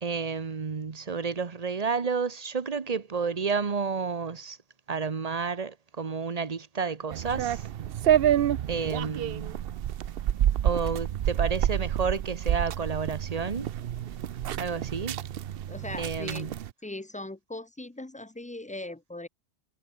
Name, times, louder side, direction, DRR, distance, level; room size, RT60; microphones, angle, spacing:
voice 1, 0.0-4.6 4.9-7.6 8.7-9.6 10.6-13.7 14.6-15.2 16.0-16.5, right 5 dB, 35° right, 1.1 m, -31 dB
sound 1, 7.1-16.7, right 11 dB, 60° right, 0.8 m, -28 dB
voice 2, 15.7-16.5 16.8-19.3, left 2 dB, 10° left, 0.3 m, -39 dB
omnidirectional pair, 1.2 m